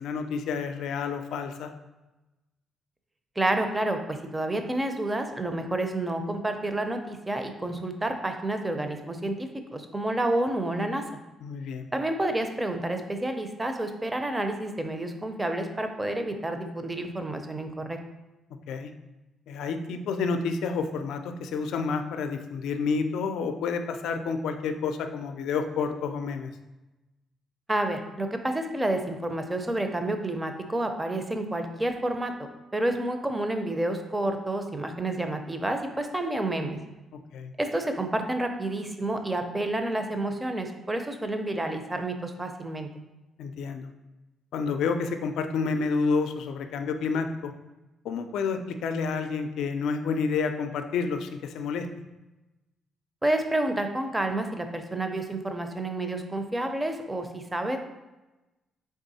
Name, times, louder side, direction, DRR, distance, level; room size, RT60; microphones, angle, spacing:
voice 1, 0.0-1.7 11.4-11.9 18.7-18.9 19.5-26.5 37.3-37.5 43.4-43.9 44.5-47.5 48.0-51.9, left 5 dB, 80° left, 7 dB, 0.4 m, -29 dB
voice 2, 3.4-11.0 11.9-18.0 27.7-36.8 37.6-42.9 53.2-57.8, right 1 dB, 15° right, 6 dB, 0.6 m, -29 dB
3.6 x 3.5 x 4.1 m, 1.0 s
cardioid pair, 90°, 0 cm